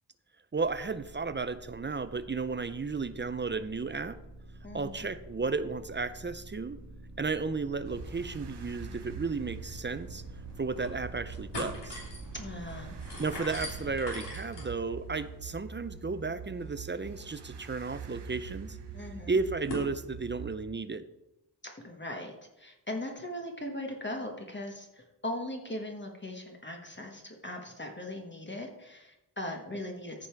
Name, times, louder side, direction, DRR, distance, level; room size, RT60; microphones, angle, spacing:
voice 1, 0.5-4.2 4.7-6.8 7.2-10.2 10.6-12.0 13.2-18.8 19.3-21.0, right 4 dB, 30° right, 12 dB, 0.5 m, -33 dB
sound 1, 0.6-14.1, right 2 dB, 45° right, 1.6 m, -48 dB
voice 2, 4.6-5.1 12.3-12.9 18.9-19.4 21.8-30.3, left 1 dB, 25° left, 2 dB, 1.3 m, -39 dB
sound 2, 7.8-20.6, right 6 dB, 75° right, 0.8 m, -45 dB
sound 3, 9.5-9.6 9.9-10.0 10.5-11.0 11.3-19.9, left 2 dB, 80° left, 3.2 m, -44 dB
14.0 x 5.4 x 4.5 m, 0.92 s
wide cardioid pair, 115°, 41 cm